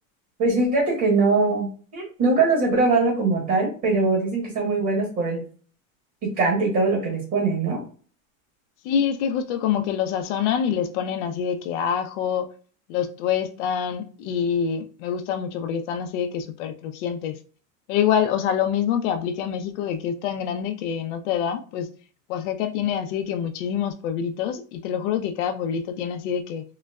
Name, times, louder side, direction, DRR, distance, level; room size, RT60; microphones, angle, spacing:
voice 1, 0.4-5.4 6.4-7.8, right 3 dB, 35° right, 1.3 m, -22 dB
voice 2, 8.8-12.5 12.9-17.4 17.9-21.9 22.3-26.6, left 8 dB, 60° left, 0.5 m, -26 dB
3.8 x 2.1 x 2.2 m
supercardioid pair, 145°, 41 cm